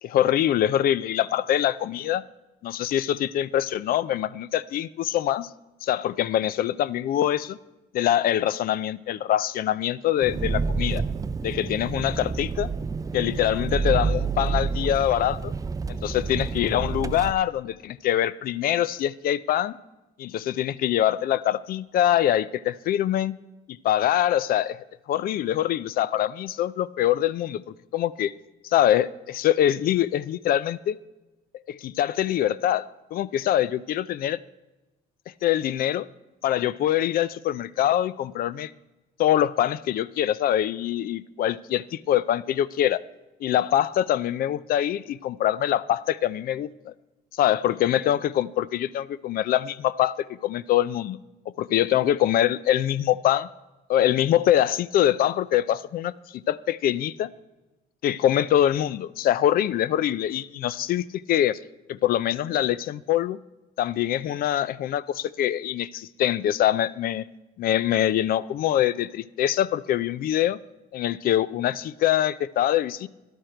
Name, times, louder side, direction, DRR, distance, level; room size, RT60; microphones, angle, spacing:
voice 1, 0.0-2.2 2.6-5.5 5.8-7.6 7.9-11.0 11.4-12.7 13.1-15.5 16.0-19.8 20.2-23.4 23.8-27.6 27.9-28.3 28.6-31.0 31.7-34.4 35.4-36.1 36.4-38.7 39.2-43.0 43.4-46.9 47.4-50.2 50.4-51.2 51.6-53.5 53.9-57.3 58.0-61.6 61.9-63.4 63.8-67.2 67.6-70.6 70.9-73.1, left 12 dB, 60° left, 19 dB, 0.5 m, -24 dB
Engine, 10.2-17.3, right 4 dB, 20° right, 0.4 m, -28 dB
12.5 x 11.5 x 4.5 m, 1.0 s
cardioid pair, 110°, 17 cm